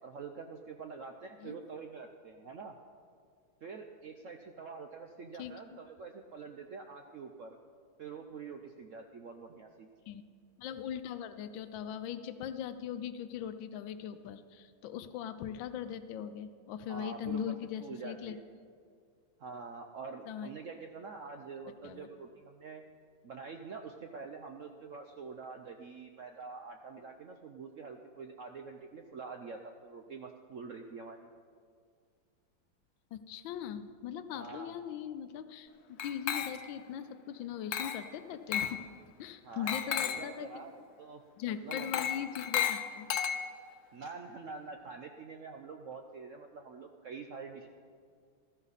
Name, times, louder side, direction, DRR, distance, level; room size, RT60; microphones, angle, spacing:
voice 1, 0.0-2.8 3.6-7.6 8.0-9.9 16.9-17.5 17.8-18.4 19.4-22.8 23.2-31.3 34.3-34.7 39.4-40.7 41.0-41.2 41.6-42.1 43.9-47.7, right 5 dB, 65° right, 4 dB, 0.8 m, -46 dB
voice 2, 10.6-18.4 20.3-20.5 21.8-22.1 33.1-38.8 39.2-40.6 41.4-43.1, left 9 dB, 80° left, 11 dB, 1.4 m, -40 dB
Glass, 36.0-36.8 37.7-38.1 38.5-38.8 39.7-40.3 41.7-43.7, left 9 dB, 65° left, 1.1 m, -34 dB
15.0 x 13.5 x 4.1 m, 2.2 s
omnidirectional pair, 2.1 m